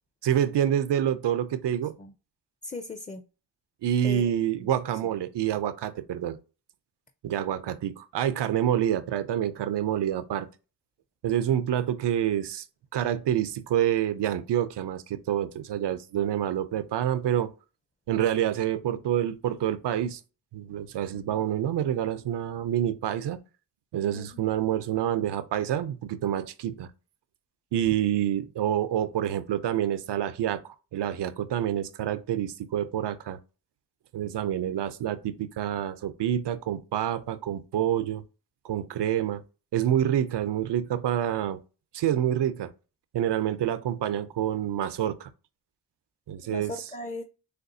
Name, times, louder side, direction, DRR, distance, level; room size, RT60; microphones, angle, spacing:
voice 1, 0.2-1.9 3.8-6.4 7.2-10.5 11.2-12.6 12.9-17.5 18.1-20.2 20.5-23.4 23.9-26.9 27.7-30.6 30.9-33.4 34.1-38.2 38.6-39.4 39.7-41.6 41.9-42.7 43.1-45.3 46.3-46.8, right 10 dB, 90° right, 0.6 m, -27 dB
voice 2, 2.6-3.2 4.0-4.7 21.1-21.4 24.1-24.5 38.0-38.1 46.5-47.2, left 2 dB, 20° left, 0.5 m, -39 dB
6.6 x 2.3 x 2.7 m
cardioid pair, 65°, 40 cm